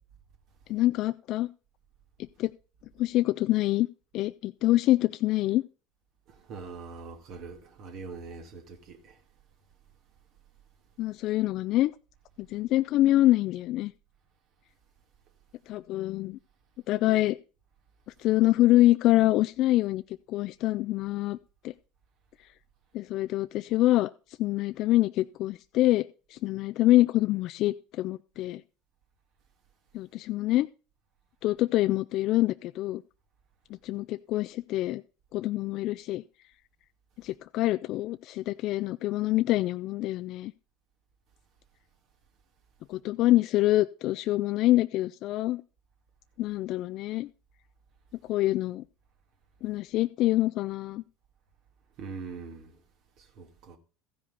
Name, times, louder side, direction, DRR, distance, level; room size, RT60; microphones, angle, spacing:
voice 1, 0.7-1.5 2.4-2.5 3.0-3.9 4.1-5.6 11.0-11.9 12.4-13.9 15.7-16.4 16.9-17.4 18.2-20.0 20.3-21.4 21.6-21.7 22.9-24.1 24.4-28.6 29.9-30.7 31.4-33.0 33.8-35.0 35.3-36.2 37.2-40.5 42.9-45.6 46.4-47.3 48.3-48.8 49.6-51.0, left 16 dB, 55° left, 0.4 m, -25 dB
voice 2, 6.3-9.2 52.0-52.8 53.2-53.8, right 4 dB, 55° right, 2.1 m, -43 dB
14.5 x 5.1 x 5.3 m
hypercardioid pair, 85°, 0 cm